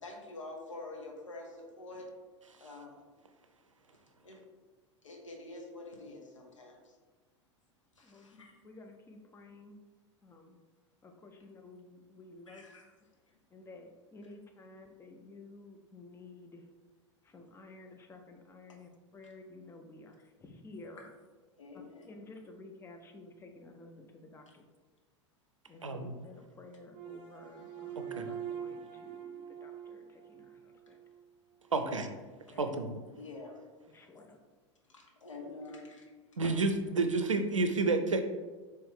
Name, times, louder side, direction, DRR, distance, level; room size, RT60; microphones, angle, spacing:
voice 1, 0.0-2.1 2.6-3.0 4.2-4.4 5.0-6.9 8.0-8.7 12.5-12.9 13.3-13.4 21.6-22.1 24.5-24.6 33.2-33.6 34.1-34.3 34.9-36.1, left 2 dB, 80° left, 0 dB, 0.9 m, -47 dB
voice 2, 8.0-9.8 10.2-10.6 11.0-12.7 13.5-16.7 17.2-21.1 21.7-24.6 25.7-31.0 32.5-32.6 33.9-34.4 36.4-36.5, left 2 dB, 15° left, 4 dB, 0.5 m, -52 dB
voice 3, 25.8-26.1 28.0-28.3 31.7-32.1 32.6-32.9 36.4-38.2, right 3 dB, 85° right, 7 dB, 0.5 m, -30 dB
sound 1, 26.9-31.2, right 9 dB, 30° right, 0.6 m, -44 dB
4.3 x 3.1 x 3.6 m, 1.3 s
figure-of-eight pair, 85°, 16 cm